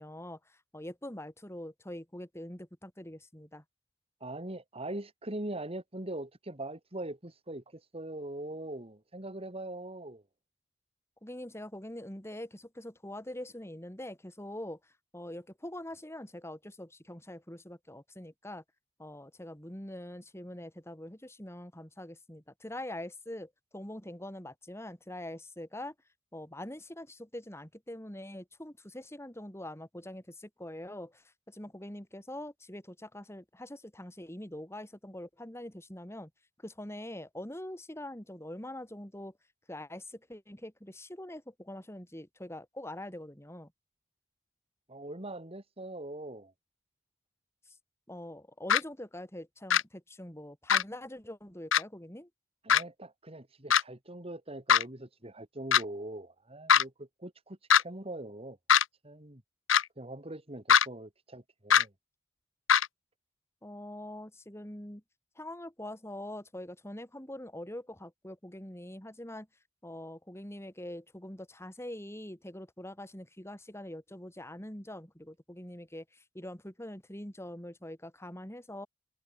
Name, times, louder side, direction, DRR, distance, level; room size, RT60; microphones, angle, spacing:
voice 1, 0.0-3.6 11.2-18.6 19.0-25.9 26.3-36.3 36.6-39.3 39.7-43.7 47.7-47.8 48.1-52.3 63.6-65.0 65.3-69.5 69.8-78.9, left 1 dB, 15° left, 4.8 m, -44 dB
voice 2, 4.2-10.2 44.9-46.5 52.6-58.6 59.0-59.4 60.0-61.9, right 1 dB, 30° right, 2.7 m, -42 dB
sound 1, 48.7-48.8 49.7-49.8 50.7-50.8 51.7-51.8 52.7-52.8 53.7-53.8 54.7-54.8 55.7-55.8 56.7-56.8 57.7-57.8 58.7-58.8 59.7-59.8 60.7-60.8 61.7-61.8 62.7-62.9, left 8 dB, 75° left, 1.0 m, -21 dB
head